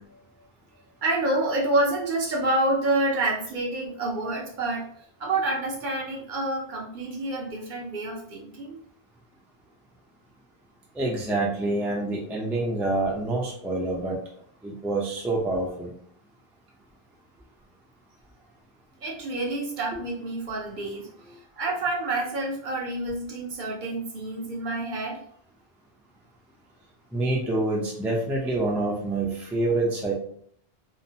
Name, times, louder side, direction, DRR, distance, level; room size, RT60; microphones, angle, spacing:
voice 1, 1.0-8.8 19.0-25.2, right 2 dB, 55° right, -1 dB, 0.7 m, -28 dB
voice 2, 11.0-14.2 14.6-15.9 27.1-30.1, right 2 dB, 5° right, -3 dB, 0.3 m, -26 dB
2.8 x 2.1 x 2.6 m, 0.63 s
omnidirectional pair, 1.0 m